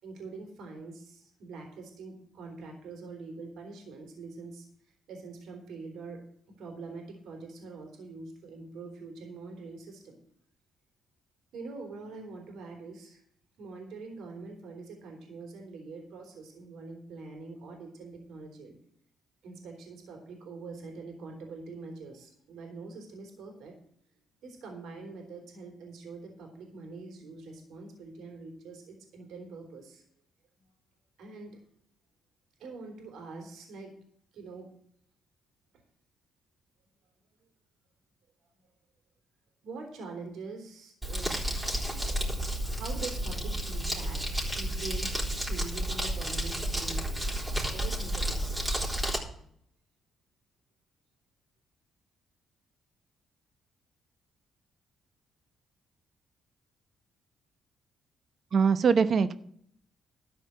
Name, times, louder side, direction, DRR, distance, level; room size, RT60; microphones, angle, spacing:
voice 1, 0.0-6.2 6.6-10.2 11.5-13.2 13.6-18.8 19.4-23.7 24.4-30.0 31.2-31.6 32.6-33.9 34.3-34.7 39.6-41.5 42.3-42.4 42.6-44.2 44.5-48.8, right 3 dB, 80° right, 2 dB, 3.4 m, -44 dB
Crumpling crinkling, 41.0-49.2, right 1 dB, 10° right, 3.9 m, -31 dB
voice 2, 58.5-59.3, right 6 dB, 50° right, 12 dB, 1.0 m, -22 dB
13.0 x 5.0 x 8.7 m, 0.65 s
cardioid pair, 90°, 0 cm